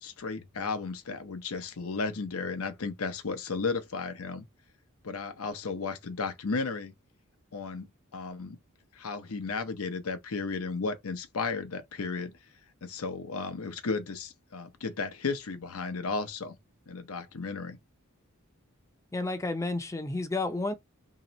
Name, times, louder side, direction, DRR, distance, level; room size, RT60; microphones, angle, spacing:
voice 1, 0.0-4.5 5.0-6.9 7.5-7.9 8.1-8.6 8.9-12.3 12.8-16.6 16.9-17.8, left 4 dB, 85° left, 0.7 m, -34 dB
voice 2, 19.1-20.7, left 2 dB, 15° left, 0.5 m, -31 dB
3.0 x 2.9 x 4.0 m
head